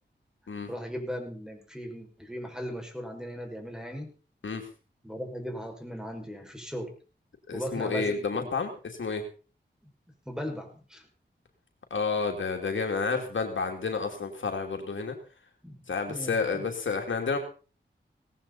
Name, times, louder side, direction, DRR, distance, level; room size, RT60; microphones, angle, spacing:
voice 1, 0.7-4.1 5.0-6.9 7.5-8.5 10.3-11.1 15.6-16.7, equal, 5° right, 3 dB, 6.0 m, -38 dB
voice 2, 7.5-9.2 11.9-15.2 15.9-17.4, left 4 dB, 90° left, 4 dB, 2.7 m, -30 dB
18.5 x 15.0 x 4.2 m, 0.37 s
wide cardioid pair, 60°, 19 cm